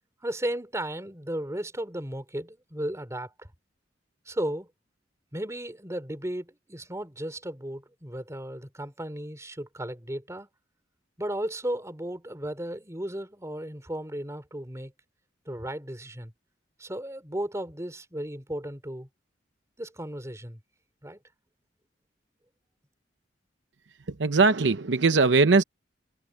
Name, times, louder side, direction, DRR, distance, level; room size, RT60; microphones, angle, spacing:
voice 1, 0.2-3.5 4.3-4.7 5.3-10.5 11.2-14.9 15.5-16.3 16.8-19.1 19.8-20.6 21.0-21.2, right 1 dB, 15° right, 3.5 m, -35 dB
voice 2, 24.1-25.6, right 3 dB, 75° right, 0.8 m, -20 dB
head